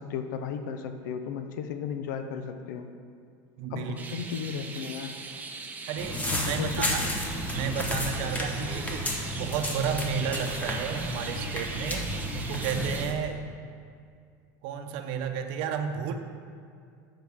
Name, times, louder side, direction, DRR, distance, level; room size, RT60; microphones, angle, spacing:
voice 1, 0.0-2.9 3.7-5.2 6.3-7.0, left 6 dB, 85° left, 8 dB, 0.6 m, -35 dB
voice 2, 3.6-4.0 5.9-7.0 7.5-12.1 12.3-13.4 14.6-16.1, right 7 dB, 60° right, 6 dB, 0.8 m, -32 dB
sound 1, 4.0-13.1, right 4 dB, 15° right, 0.7 m, -40 dB
sound 2, 6.0-13.1, equal, 15° left, 1.1 m, -32 dB
13.0 x 5.6 x 3.5 m, 2.3 s
supercardioid pair, 135°, 10 cm